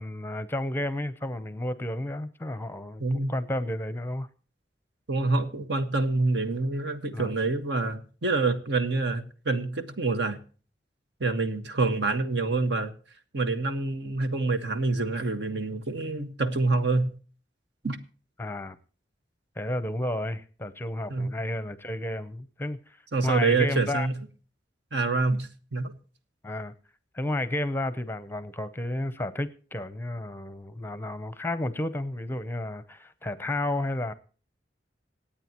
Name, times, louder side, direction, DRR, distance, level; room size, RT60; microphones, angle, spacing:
voice 1, 0.0-4.3 7.1-7.3 18.4-18.8 19.6-23.0 23.2-24.1 26.4-26.7 27.1-34.1, left 1 dB, 10° left, 14 dB, 0.7 m, -32 dB
voice 2, 3.0-3.4 5.1-10.4 11.2-12.9 13.3-17.1 17.8-18.0 21.1-21.3 23.1-24.1 24.9-26.0, right 3 dB, 65° right, 9 dB, 1.5 m, -27 dB
26.5 x 8.8 x 3.0 m, 0.40 s
head